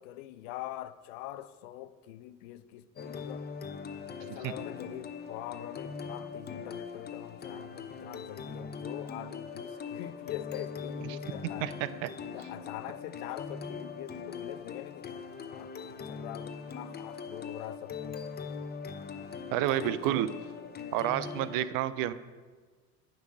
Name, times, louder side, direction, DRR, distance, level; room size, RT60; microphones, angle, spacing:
voice 1, 0.0-3.5 4.2-11.8 12.3-18.2 19.6-20.3, left 14 dB, 65° left, 0.6 m, -44 dB
sound 1, 3.0-21.6, left 5 dB, 20° left, 0.7 m, -41 dB
voice 2, 11.6-12.1 19.5-20.3 20.9-22.1, right 13 dB, 50° right, 0.5 m, -29 dB
9.5 x 4.0 x 6.3 m
hypercardioid pair, 70°, 43 cm